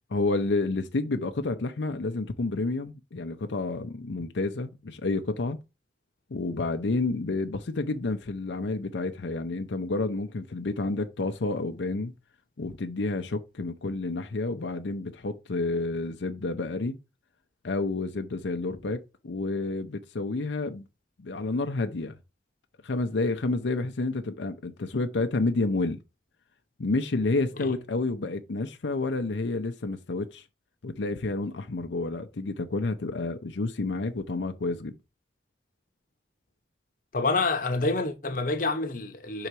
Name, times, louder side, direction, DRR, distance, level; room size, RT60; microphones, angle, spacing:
voice 1, 0.1-5.6 6.3-12.1 12.6-17.0 17.6-20.9 21.2-22.2 22.8-26.0 26.8-30.4 30.8-34.9, left 3 dB, 85° left, 0.6 m, -29 dB
voice 2, 37.1-39.5, left 3 dB, 50° left, 0.8 m, -27 dB
5.6 x 3.9 x 4.6 m
head